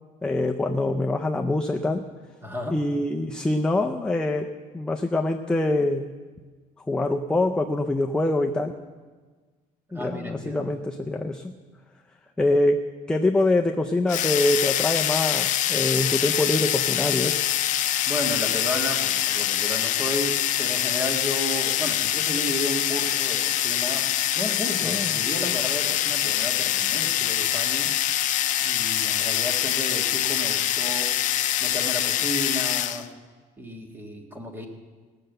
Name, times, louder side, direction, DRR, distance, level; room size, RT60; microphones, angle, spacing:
voice 1, 0.2-2.1 2.7-6.1 6.9-8.7 9.9-11.5 12.4-17.4 24.8-25.2, left 2 dB, 5° left, 3 dB, 0.4 m, -24 dB
voice 2, 2.4-2.8 9.9-10.8 18.1-24.1 24.3-28.0 28.6-31.1 31.6-33.0 33.6-34.7, equal, 15° right, 2 dB, 1.6 m, -33 dB
sound 1, 14.1-33.1, left 12 dB, 50° left, 0.5 m, -24 dB
18.5 x 6.6 x 7.9 m, 1.4 s
cardioid pair, 175°, 16 cm